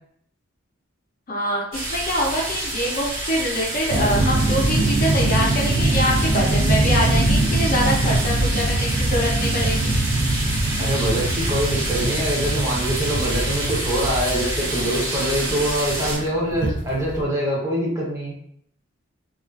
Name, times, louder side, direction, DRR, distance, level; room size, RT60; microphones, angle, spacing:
voice 1, 1.3-9.9, equal, 45° left, -3 dB, 0.5 m, -24 dB
sound 1, 1.7-16.2, right 1 dB, 85° right, 1.1 m, -28 dB
sound 2, 3.9-17.2, right 2 dB, 60° right, 0.4 m, -23 dB
voice 2, 10.8-18.3, right 1 dB, 15° right, -5 dB, 0.7 m, -24 dB
2.3 x 2.3 x 2.3 m, 0.68 s
head